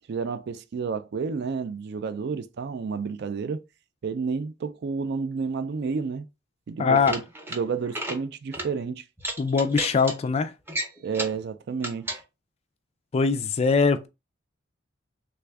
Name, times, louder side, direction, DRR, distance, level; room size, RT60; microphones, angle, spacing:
voice 1, 0.1-3.6 4.0-6.3 6.7-7.2 7.5-9.0 11.0-12.2, right 5 dB, 55° right, 0.4 m, -30 dB
voice 2, 6.8-7.1 9.4-10.5 13.1-14.1, left 5 dB, 30° left, 0.3 m, -22 dB
sound 1, 6.9-7.6 7.9-8.2 8.5-8.7 9.2-10.1 10.7-11.4 11.8-12.2, right 1 dB, 10° right, 0.6 m, -32 dB
3.3 x 2.4 x 3.2 m
head